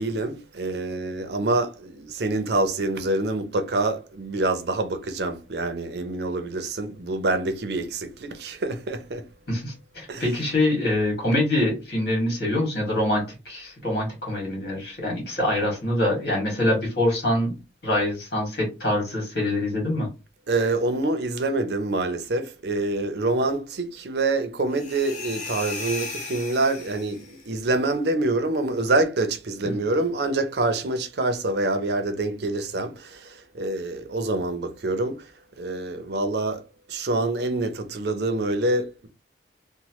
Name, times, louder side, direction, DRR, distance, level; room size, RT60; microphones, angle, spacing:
voice 1, 0.0-9.2 10.1-10.2 20.5-35.2 35.6-36.6 36.9-39.1, right 2 dB, 65° right, 0.5 m, -26 dB
voice 2, 9.5-17.5 17.8-20.1 29.6-29.7, left 1 dB, 65° left, 1.7 m, -25 dB
sound 1, 24.7-27.4, left 4 dB, 40° left, 0.7 m, -36 dB
3.0 x 2.1 x 2.9 m
head